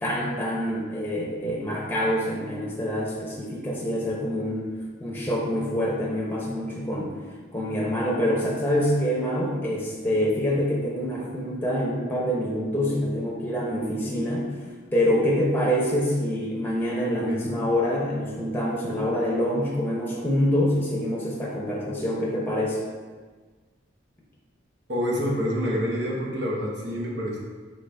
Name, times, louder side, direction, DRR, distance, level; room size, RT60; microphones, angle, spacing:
voice 1, 0.0-4.7 5.0-7.1 7.5-14.5 14.9-22.8, equal, 10° left, -4 dB, 0.7 m, -26 dB
voice 2, 24.9-27.4, equal, 60° right, -3 dB, 1.0 m, -27 dB
4.0 x 3.7 x 3.4 m, 1.4 s
head